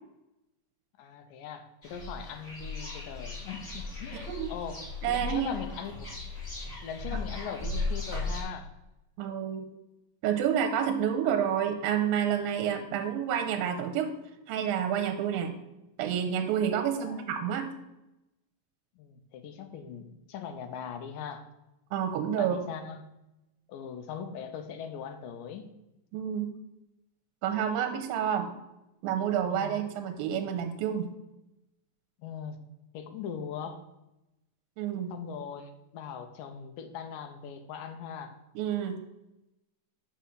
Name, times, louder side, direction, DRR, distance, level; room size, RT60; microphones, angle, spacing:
voice 1, 1.0-4.8 5.1-6.1 6.8-8.7 16.9-17.2 19.0-21.4 22.4-23.0 23.7-25.7 29.5-29.7 32.2-32.6 32.9-33.8 35.1-38.3, left 7 dB, 75° left, 7 dB, 2.2 m, -40 dB
sound 1, 1.8-8.4, left 3 dB, 25° left, 3.1 m, -37 dB
voice 2, 4.1-4.5 5.0-5.5 9.2-9.7 10.2-14.1 14.5-15.6 16.0-17.7 21.9-22.6 26.1-26.5 27.4-28.5 29.0-31.1 34.8-35.1 38.6-39.0, right 9 dB, 85° right, 6 dB, 2.3 m, -29 dB
5.7 x 5.6 x 6.3 m, 0.92 s
omnidirectional pair, 4.1 m